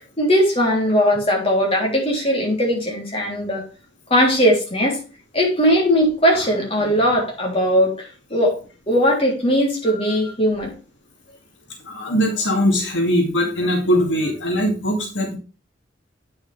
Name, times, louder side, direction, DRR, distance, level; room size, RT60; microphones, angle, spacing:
voice 1, 0.2-3.6 4.1-5.0 5.3-8.5 8.9-10.7, equal, 30° left, -1 dB, 3.4 m, -19 dB
voice 2, 11.8-15.4, equal, 80° left, 2 dB, 2.2 m, -21 dB
8.9 x 7.0 x 3.4 m, 0.33 s
head